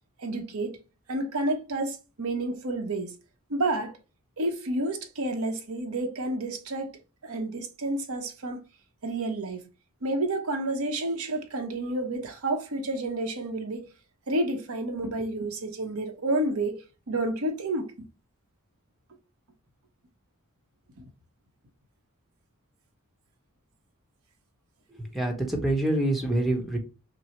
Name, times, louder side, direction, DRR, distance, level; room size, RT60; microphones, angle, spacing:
voice 1, 0.2-0.8 1.1-3.2 3.5-3.9 4.4-6.9 7.2-8.6 9.0-9.6 10.0-13.9 14.3-17.9 21.0-21.1, right 2 dB, 85° right, 0.9 m, -30 dB
voice 2, 25.0-26.8, right 1 dB, ahead, 0.9 m, -26 dB
5.9 x 2.0 x 3.0 m
head